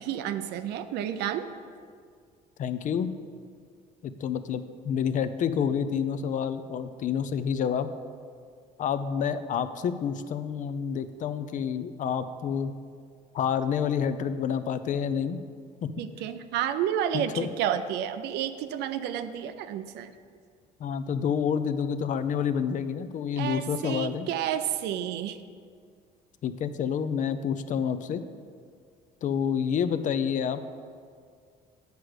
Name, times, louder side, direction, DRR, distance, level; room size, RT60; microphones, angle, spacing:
voice 1, 0.0-1.5 16.0-20.1 23.4-25.4, right 10 dB, 80° right, 10 dB, 0.5 m, -30 dB
voice 2, 2.6-3.1 4.0-7.9 8.8-12.7 13.3-15.4 15.8-15.9 17.1-17.5 20.8-24.3 26.4-28.2 29.2-30.6, left 7 dB, 50° left, 11 dB, 0.5 m, -28 dB
8.2 x 4.8 x 6.3 m, 2.1 s
cardioid pair, 110°, 17 cm